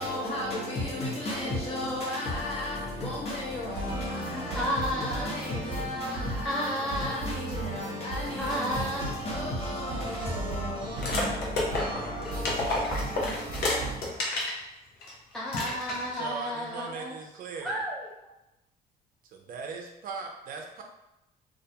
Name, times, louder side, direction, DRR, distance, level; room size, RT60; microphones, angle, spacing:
voice 1, 0.0-14.5, left 1 dB, 35° left, 1.0 m, -35 dB
sound 1, 3.7-14.0, right 2 dB, 25° right, 1.0 m, -36 dB
voice 2, 3.8-5.3 6.4-7.2 8.4-9.0 9.8-10.9 15.1-17.2 17.6-18.1, equal, 5° left, 0.4 m, -33 dB
sound 2, 11.0-14.6 15.0-15.1 15.5-16.2, left 2 dB, 75° left, 0.7 m, -30 dB
voice 3, 16.2-17.8 19.3-20.8, right 4 dB, 55° right, 0.4 m, -39 dB
2.3 x 2.1 x 2.8 m
cardioid pair, 110°, 17 cm